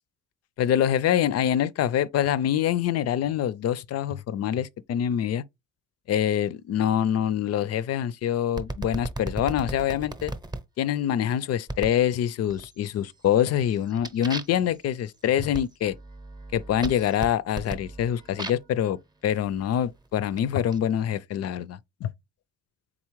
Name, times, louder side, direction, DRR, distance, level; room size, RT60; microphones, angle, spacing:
voice 1, 0.6-5.4 6.1-10.3 10.8-16.0 16.5-22.1, left 10 dB, 55° left, 0.4 m, -25 dB
sound 1, 8.6-10.6 11.7-12.0 12.5-13.0 13.4-18.8 19.5-20.8, right 2 dB, 15° right, 0.7 m, -37 dB
3.9 x 3.6 x 3.0 m
cardioid pair, 90°, 30 cm